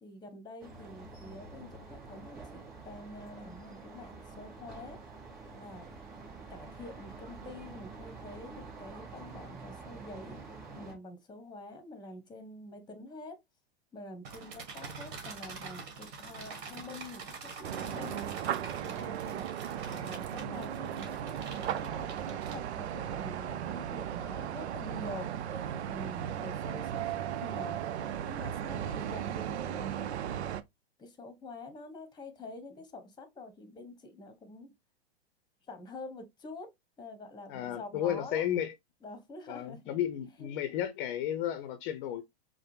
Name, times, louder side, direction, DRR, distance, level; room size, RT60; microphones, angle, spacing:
voice 1, 0.0-5.0 5.5-5.9 6.5-10.4 10.8-13.4 13.9-17.3 17.6-18.3 18.8-25.3 25.9-30.0 31.0-34.7 35.7-36.7 37.0-38.5 39.0-39.8 40.4-40.8, left 2 dB, 15° left, 1.0 m, -47 dB
sound 1, 0.6-10.9, right 3 dB, 25° right, 2.5 m, -47 dB
sound 2, 14.2-23.0, right 5 dB, 50° right, 1.5 m, -46 dB
sound 3, 17.6-30.6, right 10 dB, 80° right, 0.5 m, -36 dB
voice 2, 37.5-38.7 39.5-42.2, left 10 dB, 50° left, 0.6 m, -33 dB
4.8 x 2.1 x 3.2 m
hypercardioid pair, 110°, 33 cm